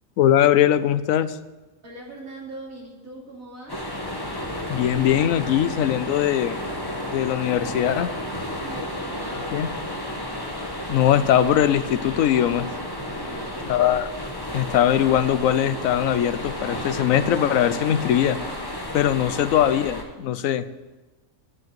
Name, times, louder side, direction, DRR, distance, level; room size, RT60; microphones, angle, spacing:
voice 1, 0.2-1.4 4.7-6.5 7.1-8.1 9.5-9.7 10.9-12.7 13.7-14.1 14.5-18.4 18.9-20.6, left 10 dB, 85° left, 14 dB, 1.0 m, -21 dB
voice 2, 1.8-3.8 8.5-9.8 13.1-13.7, right 1 dB, 85° right, -2 dB, 3.1 m, -41 dB
sound 1, 3.7-20.0, left 1 dB, 15° left, 1.5 m, -32 dB
9.7 x 7.7 x 7.9 m, 1.1 s
omnidirectional pair, 1.4 m